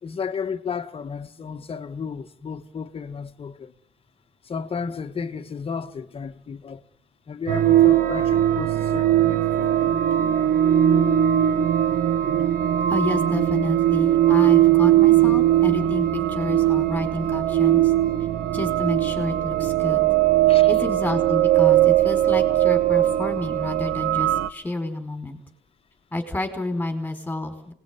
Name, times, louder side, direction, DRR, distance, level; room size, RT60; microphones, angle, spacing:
voice 1, 0.0-3.7 4.5-6.8 7.3-10.0 20.5-20.7, left 6 dB, 35° left, 1.9 m, -33 dB
sound 1, 7.5-24.5, right 12 dB, 60° right, 1.2 m, -19 dB
voice 2, 12.9-17.9 18.5-20.0 20.7-25.4 26.1-27.7, left 2 dB, 10° left, 4.9 m, -29 dB
27.5 x 19.5 x 9.7 m
cardioid pair, 110°, 17 cm